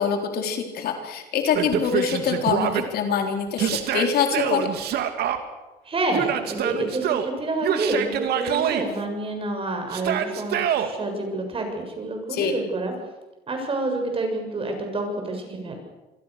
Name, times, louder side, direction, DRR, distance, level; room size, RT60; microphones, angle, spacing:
voice 1, 0.0-4.7 12.3-12.5, left 7 dB, 65° left, 4 dB, 4.0 m, -24 dB
Yell, 1.5-2.8 3.6-5.4 6.1-7.3 7.6-8.9 9.9-10.9, right 9 dB, 70° right, 2.6 m, -25 dB
voice 2, 5.9-12.9 13.5-15.8, right 2 dB, 35° right, 4 dB, 7.1 m, -28 dB
26.5 x 22.5 x 6.7 m, 1.1 s
cardioid pair, 110°, 17 cm